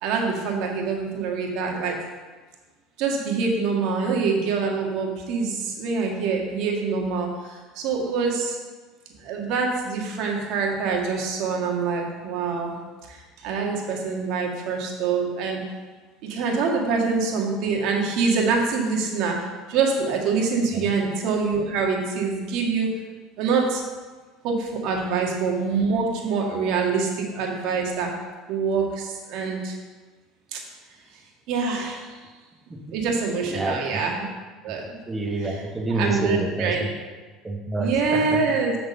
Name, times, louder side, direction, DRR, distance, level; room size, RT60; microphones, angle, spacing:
voice 1, 0.0-2.0 3.0-8.6 9.2-12.7 13.1-15.6 16.2-22.9 23.4-23.8 24.4-28.1 28.5-29.8 30.5-30.6 31.5-32.2 32.9-34.3 34.6-35.0 35.4-35.6 35.9-36.8 37.8-38.8, right 4 dB, 65° right, 0 dB, 1.7 m, -25 dB
voice 2, 33.5-34.0 35.1-36.9 37.4-38.6, right 2 dB, 15° right, 0 dB, 1.5 m, -28 dB
6.8 x 6.7 x 5.5 m, 1.3 s
hypercardioid pair, 75°, 0 cm